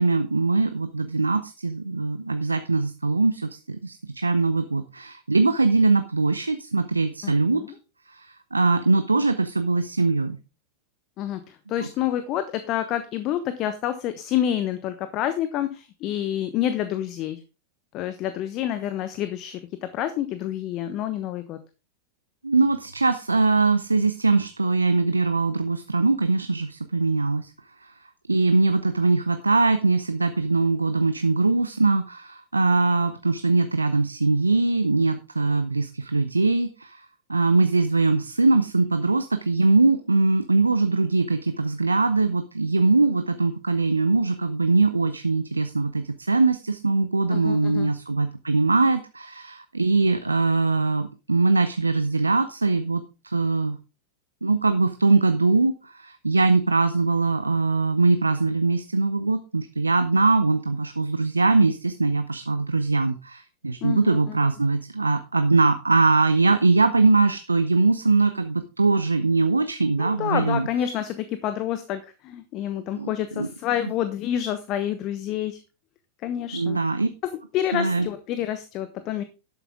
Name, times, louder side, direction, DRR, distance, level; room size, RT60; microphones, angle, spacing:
voice 1, 0.0-7.6 8.1-10.4 11.8-11.9 22.4-27.5 27.8-27.9 28.3-53.8 54.4-70.7 73.0-73.5 76.5-77.1 77.7-78.1, right 3 dB, 85° right, 10 dB, 0.7 m, -22 dB
voice 2, 7.2-7.7 11.2-11.4 11.7-17.4 17.9-19.6 19.9-21.6 47.3-47.9 63.8-64.2 70.0-75.6 76.2-76.8 77.5-79.2, left 11 dB, 40° left, 11 dB, 1.0 m, -28 dB
12.0 x 8.3 x 3.6 m, 0.30 s
figure-of-eight pair, 90°, 0 cm